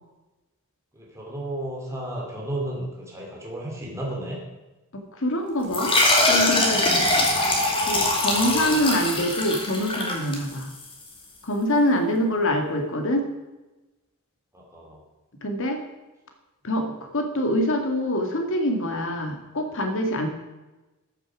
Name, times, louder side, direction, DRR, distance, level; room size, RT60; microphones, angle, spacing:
voice 1, 0.9-4.4 7.6-8.8 12.1-12.9 14.5-15.0, right 1 dB, 15° right, -3 dB, 2.7 m, -34 dB
voice 2, 4.9-6.0 6.3-7.1 7.7-10.7 11.4-13.3 15.4-15.8 16.6-20.3, left 1 dB, 60° left, 4 dB, 2.0 m, -25 dB
sound 1, 5.7-10.9, left 2 dB, 25° left, 2.4 m, -22 dB
14.0 x 7.0 x 6.2 m, 1.1 s
head